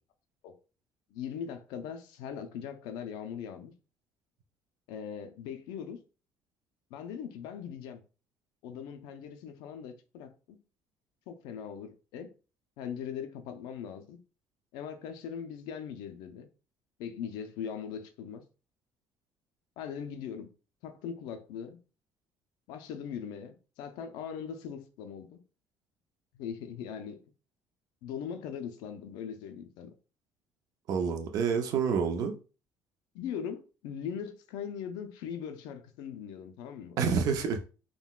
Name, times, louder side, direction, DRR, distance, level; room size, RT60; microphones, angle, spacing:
voice 1, 1.1-3.7 4.9-6.0 6.9-8.0 8.6-10.6 11.3-12.3 12.8-14.2 14.7-16.5 17.0-18.4 19.8-20.5 20.8-21.8 22.7-25.4 26.3-27.2 28.0-29.9 33.1-37.0, left 8 dB, 90° left, 0.5 m, -40 dB
voice 2, 30.9-32.4 37.0-37.6, right 6 dB, 60° right, 0.5 m, -28 dB
3.7 x 2.2 x 2.3 m
cardioid pair, 135°, 7 cm